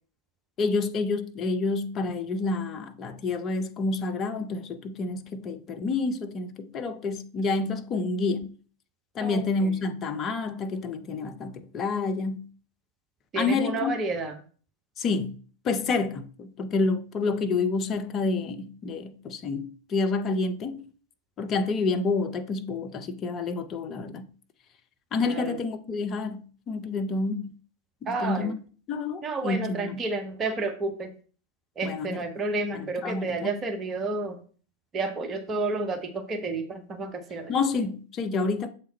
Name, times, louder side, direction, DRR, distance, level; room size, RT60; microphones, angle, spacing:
voice 1, 0.6-8.5 9.1-12.5 13.3-13.9 15.0-15.4 15.6-20.9 21.4-24.3 25.1-26.4 26.7-27.5 28.0-28.6 28.9-30.0 31.8-32.2 32.7-33.6 37.5-38.7, left 3 dB, 30° left, 0.7 m, -28 dB
voice 2, 9.2-9.7 13.3-14.4 25.2-25.5 28.1-28.5 29.2-31.1 31.8-34.4 34.9-37.5, right 3 dB, 25° right, 1.0 m, -31 dB
7.0 x 3.7 x 4.2 m
figure-of-eight pair, 90°, 0 cm